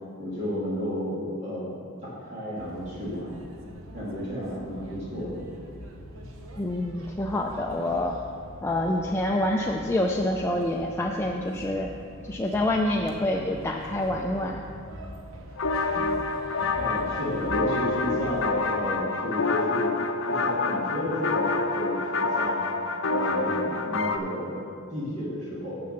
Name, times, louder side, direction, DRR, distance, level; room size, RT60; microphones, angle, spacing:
voice 1, 0.2-1.8 2.0-3.4 3.9-5.4 6.2-6.3 16.8-19.9 20.3-22.6 23.1-24.6 24.9-25.8, equal, 35° right, -8 dB, 2.4 m, -32 dB
sound 1, 2.5-18.5, equal, 70° right, 1.0 m, -43 dB
voice 2, 6.6-8.1 8.6-11.9 12.3-14.6, left 1 dB, 10° left, 0 dB, 0.4 m, -27 dB
sound 2, 15.6-24.2, left 3 dB, 65° left, 0.6 m, -27 dB
7.7 x 6.8 x 6.6 m, 2.3 s
head